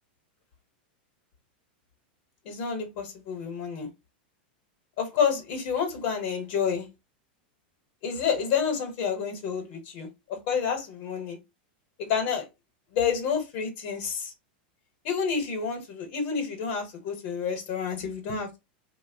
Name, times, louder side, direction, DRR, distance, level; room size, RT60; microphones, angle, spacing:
voice 1, 2.4-3.9 5.0-6.9 8.0-11.4 12.1-12.5 12.9-14.3 15.0-18.6, left 6 dB, 55° left, 1.0 m, -29 dB
2.7 x 2.1 x 2.7 m
supercardioid pair, 130°, 5 cm